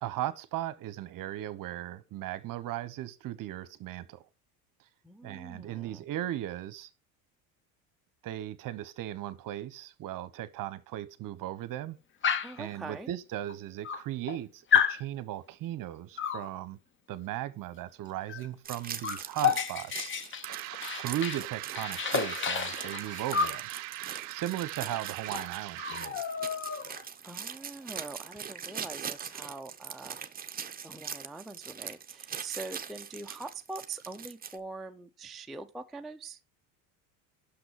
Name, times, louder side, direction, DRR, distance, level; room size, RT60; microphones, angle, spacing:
voice 1, 0.0-4.2 5.2-6.9 8.2-12.0 12.6-16.8 17.1-20.1 21.0-23.7 24.3-26.2, right 13 dB, 50° right, 0.9 m, -37 dB
voice 2, 5.0-6.0 12.4-13.1 27.2-30.2 30.8-36.4, right 3 dB, ahead, 0.3 m, -43 dB
Dog, 12.2-12.6 13.5-13.6 13.8-14.4 14.7-15.0 16.2-16.5 18.3-18.5 18.7-21.5 21.8-23.6 24.9-25.0 25.3-25.5 25.8-27.0, left 7 dB, 30° left, 0.8 m, -30 dB
sound 1, 18.6-34.6, right 7 dB, 20° right, 0.8 m, -42 dB
sound 2, 20.4-26.2, right 20 dB, 75° right, 0.6 m, -41 dB
6.4 x 6.0 x 4.7 m
supercardioid pair, 95°, 42 cm